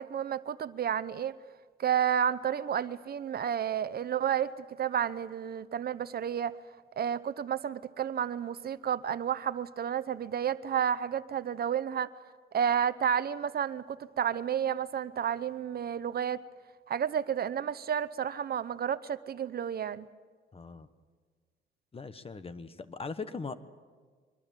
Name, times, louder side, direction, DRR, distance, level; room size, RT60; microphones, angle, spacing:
voice 1, 0.0-1.4 1.8-6.5 7.0-12.1 12.5-16.4 16.9-20.1, right 8 dB, 50° right, 14 dB, 0.8 m, -31 dB
voice 2, 20.5-20.9 21.9-23.6, left 4 dB, 30° left, 12 dB, 1.3 m, -40 dB
24.0 x 21.5 x 7.5 m, 1.5 s
cardioid pair, 90°, 20 cm